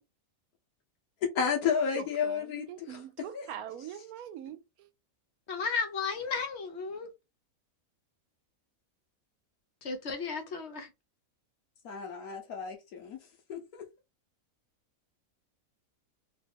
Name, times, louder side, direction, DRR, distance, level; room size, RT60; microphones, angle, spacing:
voice 1, 1.3-3.5 11.8-13.2 13.5-13.8, left 6 dB, 85° left, 1.4 m, -32 dB
voice 2, 1.9-4.9, right 10 dB, 80° right, 1.1 m, -43 dB
voice 3, 5.5-7.1 9.8-10.9, left 5 dB, 55° left, 0.9 m, -34 dB
3.6 x 2.2 x 3.4 m
omnidirectional pair, 1.5 m